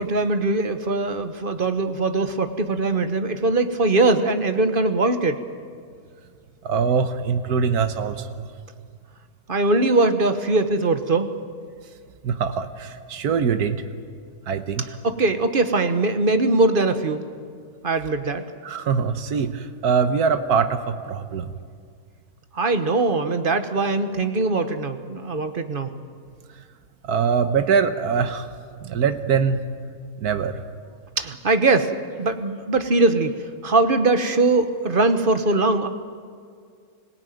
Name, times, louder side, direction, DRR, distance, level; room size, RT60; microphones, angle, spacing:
voice 1, 0.0-5.4 9.5-11.3 15.0-17.2 17.8-18.4 22.5-25.9 31.2-35.9, right 3 dB, 40° right, 9 dB, 1.3 m, -21 dB
voice 2, 6.6-8.5 12.2-13.8 14.5-14.9 18.6-21.5 27.1-28.5 28.8-29.6 30.2-30.6, right 6 dB, 85° right, 9 dB, 1.5 m, -23 dB
25.5 x 17.0 x 9.2 m, 2.2 s
omnidirectional pair, 1.6 m